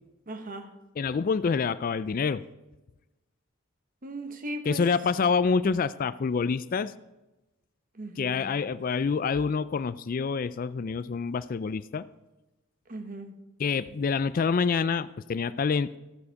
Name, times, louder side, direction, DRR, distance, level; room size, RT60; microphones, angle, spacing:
voice 1, 0.3-0.7 4.0-4.8 7.9-8.4 12.9-13.4, right 1 dB, 40° right, 7 dB, 1.2 m, -38 dB
voice 2, 1.0-2.4 4.7-6.9 8.2-12.1 13.6-16.0, left 5 dB, 40° left, 15 dB, 0.3 m, -27 dB
15.5 x 7.0 x 5.2 m, 1.0 s
head